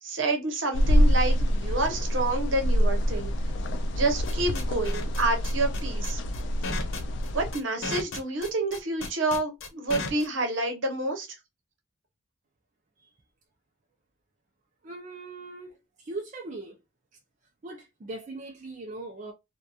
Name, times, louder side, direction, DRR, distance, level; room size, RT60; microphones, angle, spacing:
voice 1, 0.0-3.3 3.9-6.2 7.3-11.3, right 2 dB, 70° right, 0.9 m, -28 dB
sound 1, 0.7-7.5, equal, 60° left, 0.4 m, -26 dB
sound 2, 4.2-10.3, left 3 dB, 85° left, 0.8 m, -34 dB
voice 2, 14.8-16.8 17.6-19.3, right 2 dB, 40° right, 0.4 m, -40 dB
2.8 x 2.2 x 2.3 m
head